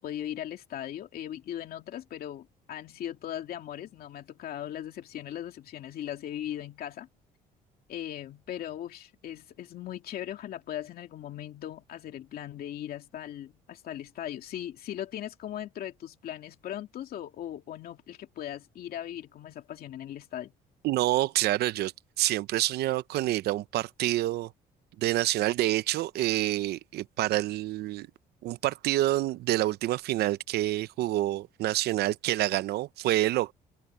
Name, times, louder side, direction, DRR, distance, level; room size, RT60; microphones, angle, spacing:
voice 1, 0.0-7.1 7.9-20.5, left 11 dB, 65° left, 2.7 m, -39 dB
voice 2, 20.8-21.9 22.2-24.5 25.0-28.1 28.4-33.5, right 15 dB, 75° right, 0.7 m, -27 dB
open air
cardioid pair, 110°, 17 cm